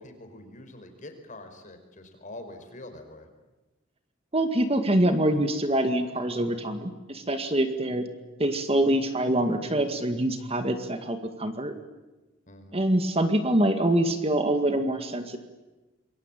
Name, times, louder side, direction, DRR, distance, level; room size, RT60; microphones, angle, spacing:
voice 1, 0.0-3.3 12.5-12.9, left 1 dB, 40° left, 7 dB, 5.0 m, -45 dB
voice 2, 4.3-8.1 8.4-11.7 12.7-15.4, right 1 dB, 30° right, 7 dB, 2.0 m, -25 dB
27.5 x 23.0 x 9.2 m, 1.1 s
head